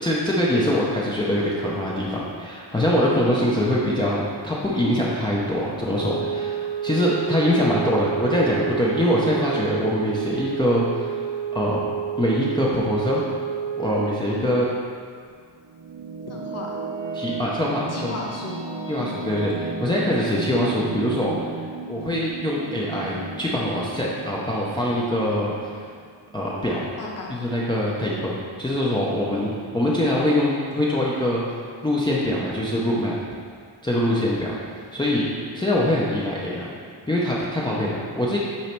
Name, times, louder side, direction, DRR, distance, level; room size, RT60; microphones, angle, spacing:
voice 1, 0.0-11.3 11.5-11.8 12.2-13.2 13.8-14.7 17.1-18.1 18.9-21.3 21.9-25.7 26.3-26.8 27.3-31.4 31.8-33.1 33.8-34.5 34.9-35.3 35.5-36.7 37.1-38.4, left 1 dB, 10° left, -6 dB, 0.5 m, -23 dB
sound 1, 5.9-14.3, right 8 dB, 85° right, 1.0 m, -29 dB
sound 2, 15.3-26.6, right 4 dB, 60° right, 0.8 m, -35 dB
voice 2, 16.3-16.8 17.9-19.2 27.0-27.4 29.3-29.5 34.1-34.4 37.6-37.9, left 3 dB, 35° left, -3 dB, 1.0 m, -36 dB
8.4 x 3.0 x 4.4 m, 2.1 s
wide cardioid pair, 180°, 47 cm